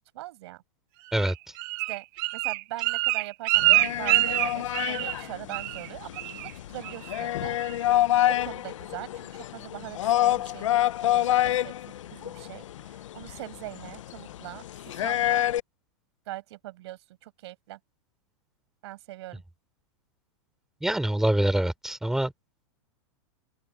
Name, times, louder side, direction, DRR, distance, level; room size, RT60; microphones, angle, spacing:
voice 1, 0.1-0.6 1.9-2.0 2.3-7.6 7.8-10.7 11.1-11.7 12.1-15.5 16.3-17.8 18.8-19.4, right 17 dB, 60° right, 5.8 m, -42 dB
Bird, 1.2-5.2 5.5-5.9 6.2-6.5 6.8-7.2 7.6-7.7, right 22 dB, 45° right, 1.1 m, -25 dB
sound 1, 3.6-15.6, left 13 dB, 85° left, 0.9 m, -28 dB
voice 2, 20.8-22.3, right 1 dB, 5° right, 3.4 m, -25 dB
open air
supercardioid pair, 155°, 16 cm